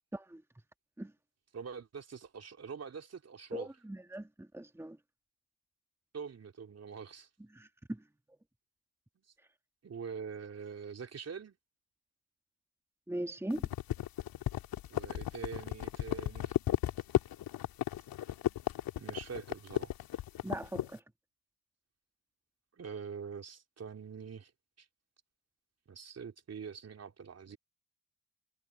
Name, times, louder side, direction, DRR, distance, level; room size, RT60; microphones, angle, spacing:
voice 1, 1.5-3.7 6.1-7.3 9.8-11.6 14.9-16.6 19.0-19.9 22.8-24.5 24.8-24.9 25.9-27.6, right 6 dB, 35° right, 3.7 m, -44 dB
voice 2, 3.5-5.0 7.5-8.0 13.1-13.7 20.4-21.0, right 1 dB, 5° right, 2.3 m, -40 dB
sound 1, 13.5-20.9, left 13 dB, 55° left, 3.1 m, -34 dB
hypercardioid pair, 50°, 41 cm